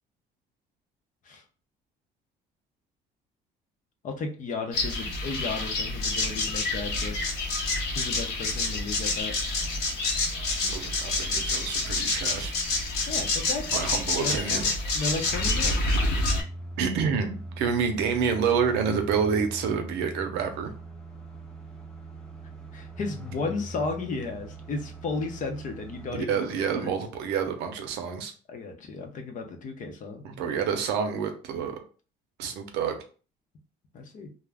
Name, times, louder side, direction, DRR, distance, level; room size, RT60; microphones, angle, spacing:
voice 1, 4.0-7.4 8.0-9.3 13.1-13.8 14.2-15.9 22.7-26.9 28.5-30.5 33.9-34.3, left 3 dB, 50° left, 4 dB, 0.7 m, -34 dB
sound 1, 4.7-16.4, left 2 dB, 80° left, 0.8 m, -28 dB
voice 2, 10.6-12.5 13.7-14.7 16.8-20.7 26.1-28.3 30.2-31.8 32.4-33.0, right 6 dB, 90° right, 6 dB, 0.6 m, -28 dB
sound 2, 15.2-26.2, right 2 dB, 5° left, 0.5 m, -41 dB
2.4 x 2.1 x 3.3 m, 0.39 s
cardioid pair, 110°, 17 cm